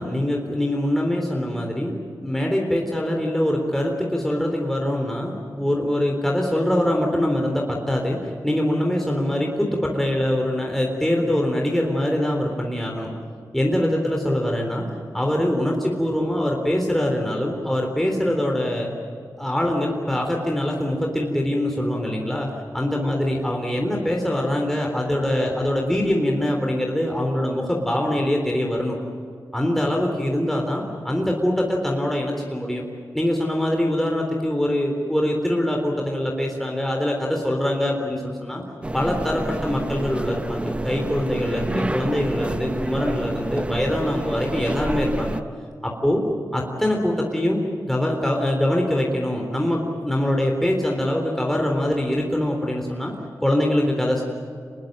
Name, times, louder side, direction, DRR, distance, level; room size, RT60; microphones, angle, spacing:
voice 1, 0.0-13.1 13.5-14.9 15.1-18.9 19.4-22.5 22.7-29.0 29.5-32.8 33.1-38.6 38.9-45.4 45.8-46.2 46.5-53.1 53.4-54.2, left 1 dB, 5° left, 0 dB, 3.7 m, -23 dB
sound 1, 38.8-45.4, right 1 dB, 15° right, 0.8 m, -28 dB
26.5 x 20.5 x 9.0 m, 2.3 s
wide cardioid pair, 80°, 7 cm